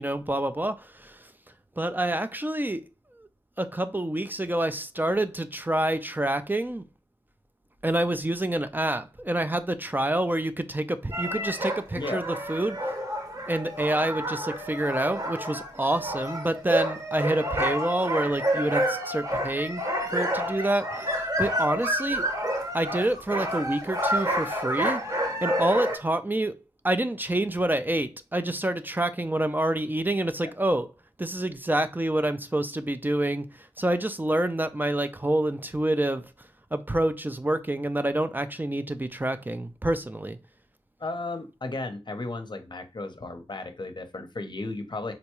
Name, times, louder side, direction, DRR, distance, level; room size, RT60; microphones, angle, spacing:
voice 1, 0.0-1.3 1.8-2.9 3.6-6.8 7.8-12.8 13.5-19.8 20.1-22.2 22.7-25.0 25.4-26.6 26.8-30.9 31.2-36.3 36.7-40.4, right 1 dB, 15° right, 0.3 m, -27 dB
Alaskan Huskies, 11.1-26.0, equal, 35° right, 0.8 m, -29 dB
voice 2, 12.0-12.3 30.4-30.5 41.0-45.1, left 2 dB, 45° left, 0.6 m, -34 dB
3.8 x 2.2 x 2.9 m
cardioid pair, 45°, 11 cm